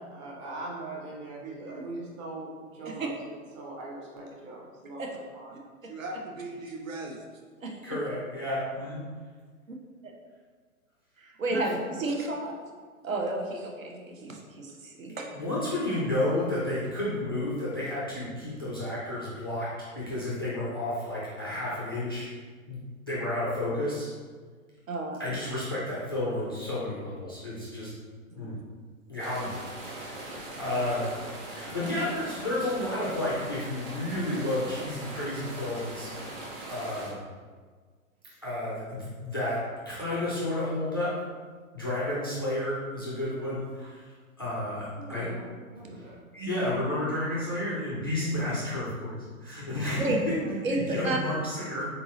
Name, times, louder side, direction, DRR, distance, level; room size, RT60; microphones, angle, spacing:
voice 1, 0.1-3.1 3.5-5.0 5.3-5.5 43.8-43.9 45.0-46.2 48.2-48.4 50.2-50.5, right 2 dB, 20° right, -3 dB, 0.7 m, -41 dB
voice 2, 1.4-1.9 2.8-3.1 5.0-5.2 5.5-7.2 7.6-7.7 11.2-12.7 13.0-15.3 24.9-25.3 28.3-28.5 50.0-50.2 50.6-50.8 51.0-51.2, right 2 dB, 65° right, 1 dB, 0.9 m, -33 dB
voice 3, 7.8-9.0 11.5-11.7 15.3-22.3 22.7-24.1 25.2-27.9 28.4-28.5 29.1-29.5 29.9-30.3 30.6-31.1 31.5-36.1 36.7-37.2 38.4-39.6 39.9-41.1 41.7-44.0 44.4-45.3 46.0-46.1 46.3-50.1 50.7-51.8, left 1 dB, 20° left, -8 dB, 0.4 m, -31 dB
sound 1, 29.2-37.1, right 1 dB, 40° right, 1.2 m, -40 dB
3.9 x 3.6 x 3.1 m, 1.5 s
figure-of-eight pair, 115°, 43 cm